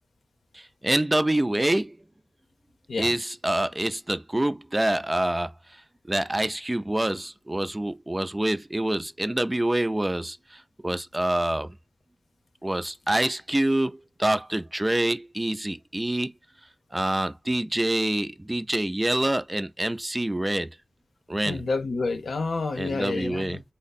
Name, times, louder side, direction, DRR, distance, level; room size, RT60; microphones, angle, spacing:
voice 1, 0.5-2.0 3.0-5.5 6.1-11.7 12.6-16.3 16.9-20.7 21.3-21.6 22.8-23.6, right 1 dB, 20° right, 0.4 m, -26 dB
voice 2, 21.4-23.6, left 3 dB, 90° left, 0.6 m, -29 dB
3.4 x 2.0 x 4.0 m
wide cardioid pair, 60°, 0 cm